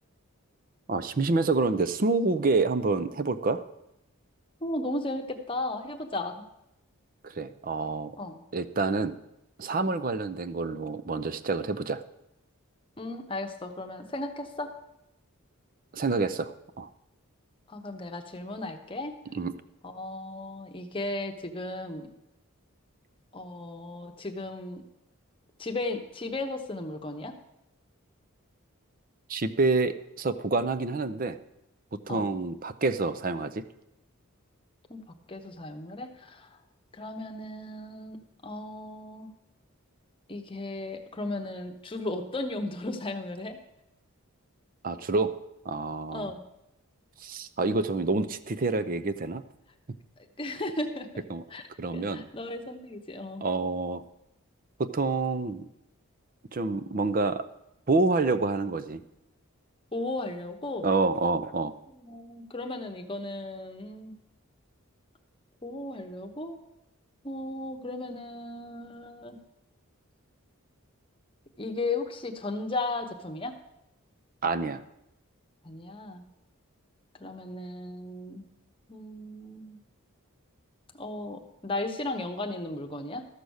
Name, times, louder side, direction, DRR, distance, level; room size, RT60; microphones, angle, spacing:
voice 1, 0.9-3.6 7.2-8.2 8.5-9.1 9.6-12.0 15.9-16.9 19.3-19.5 29.3-31.4 32.1-33.6 44.8-45.3 45.7-46.3 47.2-49.4 51.3-51.4 51.8-52.3 53.4-54.0 54.8-55.7 56.5-57.4 57.9-59.0 60.8-61.7 74.4-74.8, right 3 dB, 40° right, 13 dB, 0.5 m, -27 dB
voice 2, 4.6-6.4 8.2-8.4 13.0-14.7 17.7-19.2 19.8-22.1 23.3-24.8 25.6-27.3 32.1-32.3 34.9-36.5 36.9-39.3 40.3-43.6 46.1-46.4 50.4-51.2 51.5-51.7 51.9-53.5 59.9-60.9 61.9-64.1 65.6-66.5 67.2-69.4 71.6-73.5 75.6-76.2 77.2-78.5 78.9-79.8 80.9-83.3, left 2 dB, 25° left, 5 dB, 1.0 m, -35 dB
13.0 x 6.8 x 6.4 m, 0.85 s
head